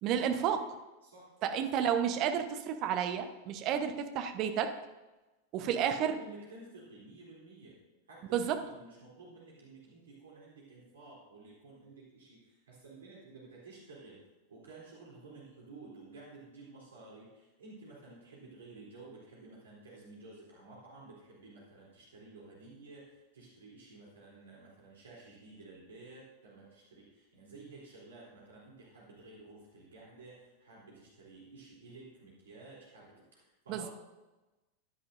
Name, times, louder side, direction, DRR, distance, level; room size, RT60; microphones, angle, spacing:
voice 1, 0.0-0.6 1.4-4.7 5.5-6.1 8.3-8.6 33.7-33.9, right 8 dB, 40° right, 7 dB, 1.0 m, -31 dB
voice 2, 1.0-1.3 5.5-7.8 8.1-14.2 14.5-33.9, right 3 dB, 65° right, -5 dB, 3.2 m, -53 dB
15.0 x 10.0 x 2.6 m, 1.1 s
figure-of-eight pair, 90°, 0 cm